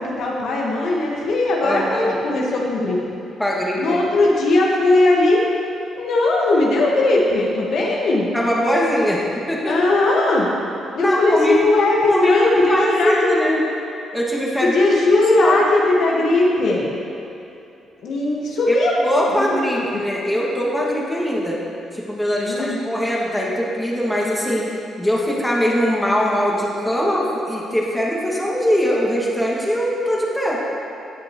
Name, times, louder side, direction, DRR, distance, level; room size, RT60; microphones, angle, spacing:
voice 1, 0.0-3.0 3.8-5.4 5.9-8.3 9.7-10.5 10.9-13.3 14.6-16.9 18.0-18.9 19.3-19.5 19.7-19.8 22.5-22.8, left 2 dB, 70° left, -3 dB, 1.5 m, -18 dB
voice 2, 1.6-2.1 3.4-4.0 8.3-9.2 9.5-9.8 11.0-11.6 12.1-13.6 14.1-15.6 18.7-18.8 19.0-21.6 21.9-24.7 25.0-30.6, equal, 5° left, -4 dB, 2.0 m, -21 dB
17.5 x 6.0 x 3.1 m, 2.7 s
cardioid pair, 90°, 0 cm